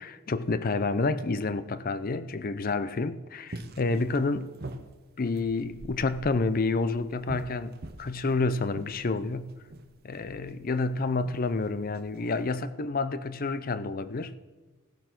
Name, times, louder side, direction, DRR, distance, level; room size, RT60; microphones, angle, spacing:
voice 1, 0.0-4.5 5.2-9.6 10.0-14.3, left 3 dB, 40° left, 0.5 m, -29 dB
sound 1, 3.5-12.5, right 2 dB, 45° right, 0.8 m, -45 dB
16.0 x 6.9 x 5.9 m
head